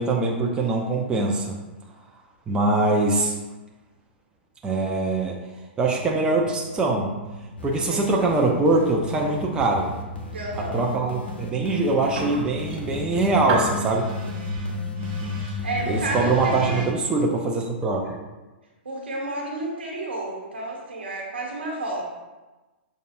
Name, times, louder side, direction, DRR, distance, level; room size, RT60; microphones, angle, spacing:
voice 1, 0.0-1.6 2.5-3.4 4.6-5.4 5.8-7.1 7.6-10.0 10.7-14.1 15.9-18.2, right 2 dB, 15° right, -1 dB, 0.5 m, -23 dB
sound 1, 5.8-16.9, left 2 dB, 35° right, 1.2 m, -35 dB
sound 2, 7.6-16.2, left 3 dB, 70° left, 0.7 m, -40 dB
voice 2, 7.7-8.1 10.3-10.9 15.6-16.8 18.8-22.0, right 2 dB, 70° right, -1 dB, 1.1 m, -31 dB
sound 3, 11.7-17.6, right 2 dB, 50° right, 1.4 m, -36 dB
6.5 x 2.6 x 2.4 m, 1.1 s
figure-of-eight pair, 110°, 6 cm